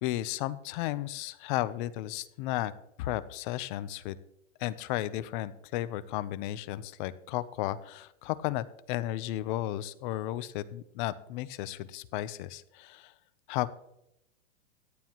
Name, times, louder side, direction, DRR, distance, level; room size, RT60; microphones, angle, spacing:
voice 1, 0.0-2.7 3.0-4.2 4.6-13.1 13.5-13.7, left 15 dB, 40° left, 15 dB, 0.8 m, -34 dB
17.0 x 11.0 x 3.1 m, 0.83 s
hypercardioid pair, 135°, 37 cm